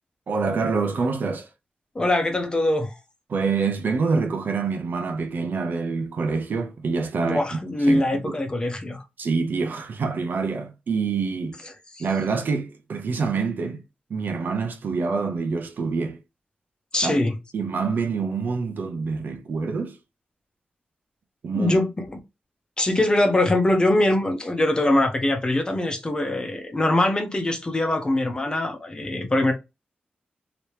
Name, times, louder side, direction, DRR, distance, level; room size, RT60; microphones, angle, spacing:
voice 1, 0.3-1.5 3.3-7.6 7.9-8.3 9.2-11.6 12.0-13.8 14.1-16.2 17.0-17.1 17.5-20.0 21.4-21.7, right 4 dB, 70° right, 0.7 m, -26 dB
voice 2, 1.9-2.9 7.2-9.0 11.9-12.0 16.9-17.3 21.5-22.2 22.8-29.5, left 1 dB, 25° left, 1.0 m, -22 dB
2.9 x 2.9 x 3.2 m
wide cardioid pair, 100°, 3 cm